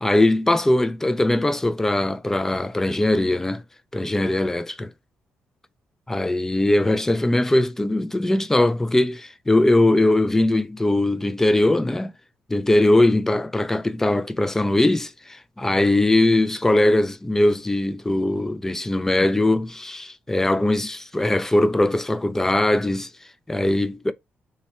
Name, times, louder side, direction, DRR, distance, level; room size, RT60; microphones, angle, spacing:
voice 1, 0.0-3.6 3.9-4.9 6.1-12.1 12.5-23.1 23.5-24.1, left 1 dB, 10° left, 0.3 m, -20 dB
3.4 x 2.1 x 4.2 m
cardioid pair, 125°, 4 cm